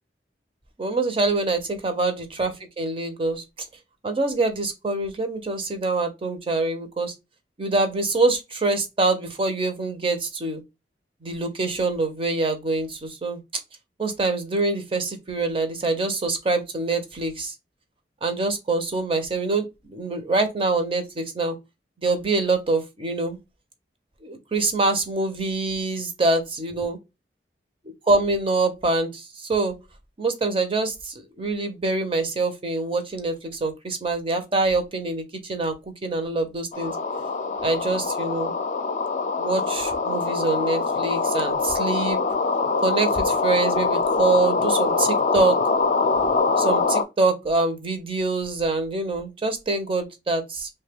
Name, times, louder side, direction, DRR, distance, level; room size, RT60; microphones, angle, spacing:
voice 1, 0.8-3.4 4.0-7.1 7.6-10.6 11.2-13.4 14.0-17.5 18.2-21.6 22.0-23.4 24.2-27.0 28.1-29.7 30.2-35.2 35.5-35.7 36.0-36.9 37.6-38.5 39.4-42.2 42.8-45.6 46.6-50.7, right 3 dB, 30° right, 0.6 m, -25 dB
sound 1, 36.7-47.0, left 4 dB, 45° left, 0.5 m, -23 dB
3.1 x 2.2 x 3.4 m
head